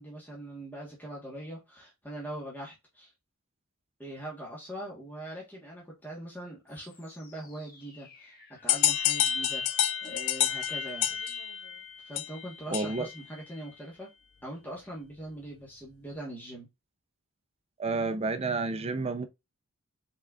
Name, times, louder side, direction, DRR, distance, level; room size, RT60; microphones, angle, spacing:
voice 1, 0.0-3.1 4.0-9.7 10.0-11.2 12.0-14.1 14.4-16.7, right 1 dB, 10° left, 1.2 m, -42 dB
sound 1, 6.7-12.3, left 5 dB, 40° left, 1.1 m, -55 dB
sound 2, 8.7-13.2, left 11 dB, 65° left, 0.4 m, -29 dB
voice 2, 12.7-13.1 17.8-19.3, right 3 dB, 25° right, 0.4 m, -30 dB
5.4 x 3.8 x 2.3 m
head